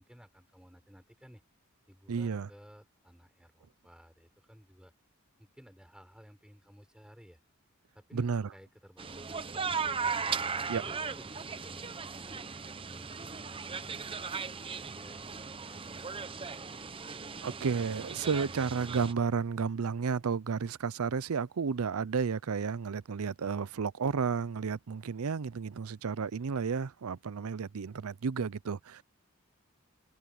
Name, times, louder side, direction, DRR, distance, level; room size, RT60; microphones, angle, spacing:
voice 1, 0.0-1.4 1.9-4.9 5.4-7.4 7.9-8.3 8.5-10.3 10.7-13.0 13.5-17.2, equal, 5° right, 5.0 m, -57 dB
voice 2, 2.1-2.5 8.1-8.5 10.7-10.8 17.4-29.0, right 5 dB, 80° right, 0.5 m, -32 dB
sound 1, 9.0-19.1, right 5 dB, 25° right, 0.7 m, -37 dB
head